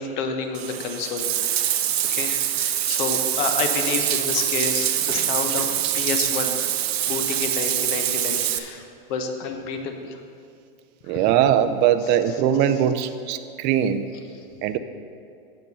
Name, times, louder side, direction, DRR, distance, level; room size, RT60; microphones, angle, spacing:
voice 1, 0.0-6.6 7.1-8.8 9.1-10.2 11.1-11.2, left 5 dB, 55° left, 5 dB, 1.2 m, -29 dB
Bathtub (filling or washing), 0.5-8.6, right 11 dB, 85° right, 0.7 m, -24 dB
voice 2, 11.1-14.0 14.6-14.8, right 9 dB, 35° right, 10 dB, 0.5 m, -21 dB
8.6 x 7.5 x 5.5 m, 2.4 s
hypercardioid pair, 130°, 30 cm